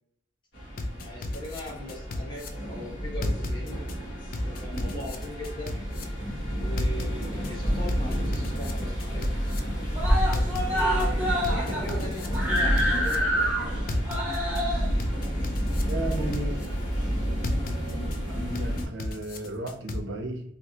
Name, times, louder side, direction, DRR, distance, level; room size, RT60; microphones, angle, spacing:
sound 1, 0.5-18.9, equal, 70° left, 1.4 m, -30 dB
sound 2, 0.8-2.5 3.2-4.0 4.3-6.0 6.8-7.5 7.9-9.6 10.3-11.1 11.4-13.2 13.9-14.6 15.0-16.7 17.4-18.2 18.5-20.0, left 2 dB, 45° left, 0.4 m, -33 dB
voice 1, 0.9-3.9 4.4-5.8 6.4-9.6 10.3-13.8, left 1 dB, 25° left, -4 dB, 1.1 m, -40 dB
Screaming, 7.0-8.0 8.3-8.4 8.7-8.8 9.1-9.6 9.9-16.7 17.6-17.7, equal, 10° right, 0.7 m, -28 dB
voice 2, 15.8-16.6 18.3-20.4, right 2 dB, 65° right, 3 dB, 0.6 m, -34 dB
3.3 x 2.5 x 2.7 m, 0.69 s
head